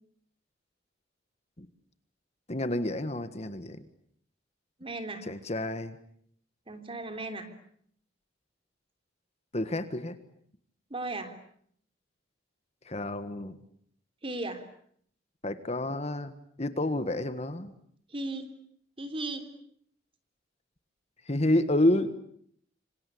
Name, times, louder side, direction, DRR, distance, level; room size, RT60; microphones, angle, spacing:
voice 1, 2.5-3.8 5.2-6.0 9.5-10.2 12.8-13.6 15.4-16.3 16.6-17.7 21.2-22.2, left 1 dB, 35° left, 10 dB, 1.6 m, -29 dB
voice 2, 4.8-5.3 6.7-7.5 10.9-11.3 14.2-14.6 18.1-18.5 19.0-19.4, right 2 dB, 30° right, 8 dB, 3.5 m, -36 dB
27.0 x 26.0 x 8.6 m, 0.66 s
head